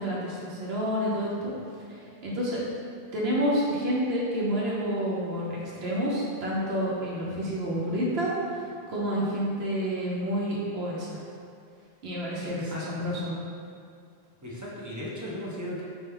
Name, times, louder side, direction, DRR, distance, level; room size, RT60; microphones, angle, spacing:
voice 1, 0.0-1.5 1.9-2.6 3.1-11.2 12.0-13.3, equal, 80° right, -6 dB, 0.9 m, -29 dB
voice 2, 12.4-13.1 14.4-15.8, left 1 dB, 25° right, -6 dB, 0.5 m, -37 dB
3.4 x 2.3 x 4.4 m, 2.4 s
omnidirectional pair, 1.0 m